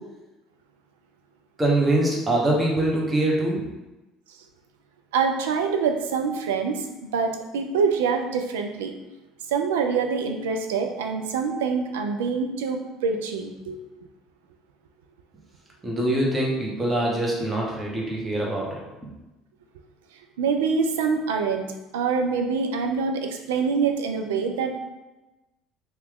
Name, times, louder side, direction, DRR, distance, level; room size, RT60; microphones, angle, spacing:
voice 1, 1.6-3.6 15.8-18.8, right 1 dB, 15° right, -3 dB, 0.9 m, -23 dB
voice 2, 5.1-8.9 9.5-13.8 20.4-24.8, right 5 dB, 85° right, 4 dB, 0.3 m, -25 dB
2.9 x 2.3 x 3.5 m, 1.0 s
hypercardioid pair, 70°, 0 cm